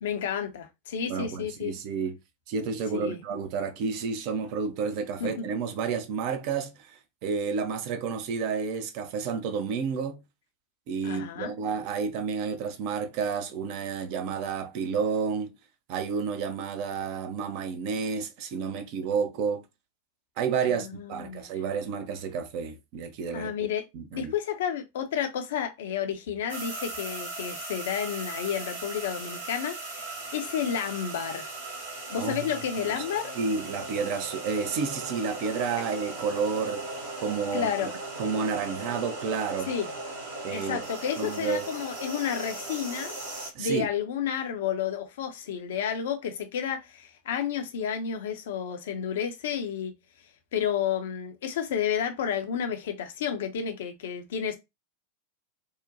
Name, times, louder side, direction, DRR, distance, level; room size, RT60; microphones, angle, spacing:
voice 1, 0.0-1.7 2.9-3.2 5.2-5.3 11.0-11.5 20.8-21.5 23.3-23.8 24.1-31.5 32.1-33.3 37.5-37.9 39.7-39.9 40.5-43.1 43.6-49.9 50.5-54.6, left 8 dB, 55° left, 0.5 m, -31 dB
voice 2, 1.1-2.2 2.5-7.0 7.2-10.2 10.9-15.5 15.9-19.6 20.4-23.5 23.9-24.3 32.2-32.4 33.0-33.1 33.3-36.8 37.2-37.9 38.2-39.7 40.4-40.8 41.2-41.6 43.5-43.9, right 5 dB, 45° right, 0.5 m, -30 dB
sound 1, 26.5-43.5, right 2 dB, 65° right, 1.2 m, -38 dB
2.7 x 2.1 x 2.6 m
figure-of-eight pair, 90°, 0 cm